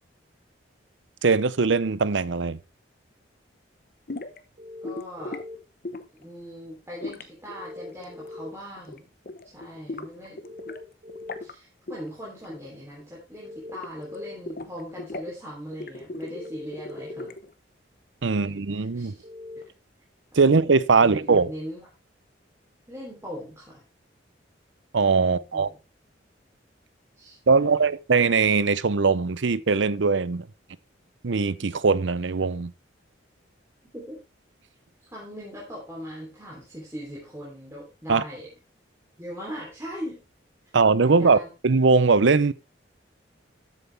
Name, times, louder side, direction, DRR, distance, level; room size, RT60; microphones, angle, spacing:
voice 1, 1.2-2.6 18.2-19.1 20.3-21.5 24.9-25.7 27.5-30.5 31.2-32.7 38.1-38.2 40.7-42.5, right 4 dB, 75° right, 0.6 m, -21 dB
sound 1, 4.1-4.4 4.8-5.4 5.8-6.2 7.0-8.5 8.8-9.0 9.3-10.8 11.1-11.5 11.9-12.8 13.0-14.2 14.5-15.3 15.7-17.5, left 2 dB, 50° left, 0.9 m, -38 dB
sound 2, 4.6-5.6 7.5-8.5 10.4-11.4 13.4-14.4 16.3-17.3 19.2-19.6, left 2 dB, 45° right, 2.2 m, -41 dB
voice 2, 4.8-5.4 6.1-9.0 9.5-10.4 11.4-17.3 18.3-19.2 20.3-20.5 20.9-21.9 22.9-23.8 25.2-25.7 27.1-27.8 33.9-34.2 35.1-38.5 39.2-40.2 41.0-41.5, equal, 15° right, 3.2 m, -40 dB
13.0 x 8.0 x 3.4 m
head